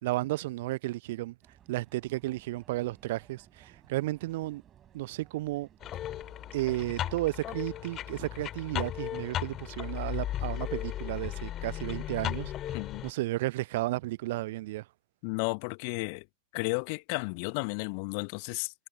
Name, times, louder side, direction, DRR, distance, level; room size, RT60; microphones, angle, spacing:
voice 1, 0.0-1.3 1.7-4.6 4.9-5.7 6.5-12.5 13.0-14.9, right 18 dB, 50° right, 0.6 m, -33 dB
sound 1, 1.4-11.0, right 10 dB, 25° right, 6.3 m, -59 dB
sound 2, 5.8-13.1, left 12 dB, 30° left, 2.9 m, -36 dB
voice 2, 12.7-13.0 15.2-16.3 16.5-18.7, left 36 dB, 45° left, 1.0 m, -33 dB
figure-of-eight pair, 90°, 0 cm